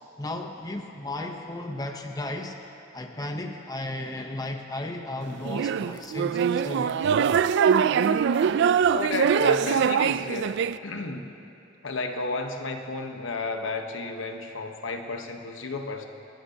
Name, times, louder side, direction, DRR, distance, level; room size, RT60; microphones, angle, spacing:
voice 1, 0.2-2.6 2.9-7.0, left 1 dB, 20° left, 3 dB, 0.8 m, -34 dB
sound 1, 5.4-10.8, right 7 dB, 60° right, 0.3 m, -23 dB
voice 2, 8.9-10.6 10.8-11.3 11.8-16.1, left 3 dB, 70° left, 4 dB, 1.1 m, -32 dB
28.5 x 13.0 x 2.8 m, 2.7 s
head